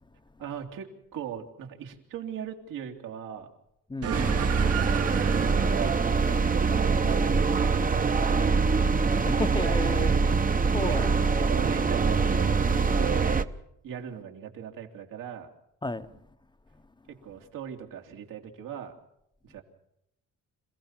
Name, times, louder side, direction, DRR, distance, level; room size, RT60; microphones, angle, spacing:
voice 1, 0.4-3.5 4.3-4.5 5.2-8.7 10.0-10.2 10.9-11.1 11.5-13.4 13.8-15.5 17.1-19.0 19.4-19.6, right 8 dB, 80° right, 3.1 m, -38 dB
voice 2, 3.9-4.4 9.2-10.1 10.7-11.3 11.8-11.9 15.8-16.1, left 2 dB, 15° left, 0.9 m, -33 dB
sound 1, 4.0-8.8, right 8 dB, 45° right, 1.1 m, -35 dB
sound 2, 4.1-13.4, right 4 dB, 25° right, 0.9 m, -24 dB
27.0 x 16.0 x 7.4 m
cardioid pair, 115°, 32 cm